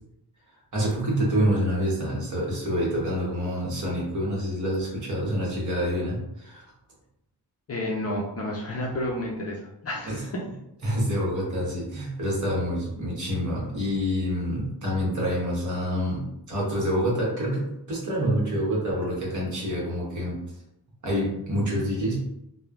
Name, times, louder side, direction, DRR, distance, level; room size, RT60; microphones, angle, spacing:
voice 1, 0.7-6.6 10.0-10.2 10.8-20.4 21.0-22.2, equal, 45° right, -4 dB, 1.0 m, -27 dB
voice 2, 7.7-10.4, left 1 dB, 35° left, -2 dB, 0.4 m, -31 dB
3.0 x 2.0 x 2.4 m, 0.83 s
wide cardioid pair, 155°, 42 cm